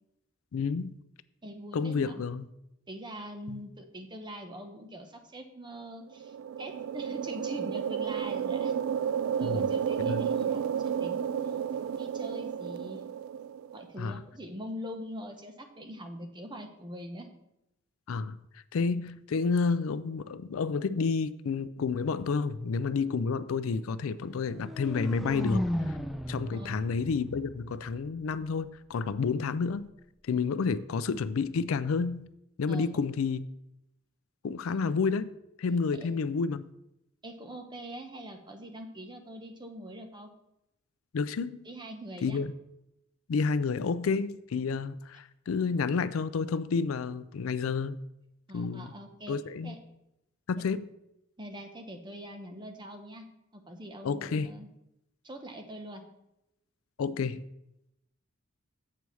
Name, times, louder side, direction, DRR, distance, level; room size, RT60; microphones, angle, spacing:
voice 1, 0.5-0.9 1.7-2.4 3.5-3.6 9.4-9.7 10.1-10.3 14.0-14.2 18.1-18.4 18.7-26.0 26.3-29.9 30.3-32.3 32.6-33.5 34.4-36.7 41.1-41.6 42.2-42.5 43.3-48.0 48.5-48.9 49.3-49.8 50.5-50.9 54.0-54.5 57.0-57.4, left 5 dB, 85° left, 0.4 m, -30 dB
voice 2, 1.4-2.2 2.9-8.7 9.4-11.6 12.0-13.0 13.7-17.3 26.5-26.8 32.7-32.9 34.7-34.8 36.0-36.1 37.2-40.3 41.6-42.4 48.5-49.4 49.6-49.8 50.5-50.6 51.4-53.3 53.5-54.7 55.2-56.0, equal, 20° right, 0.9 m, -43 dB
sound 1, 6.1-13.8, right 8 dB, 85° right, 0.3 m, -32 dB
sound 2, 24.4-28.4, equal, ahead, 0.5 m, -35 dB
7.5 x 4.7 x 6.8 m
head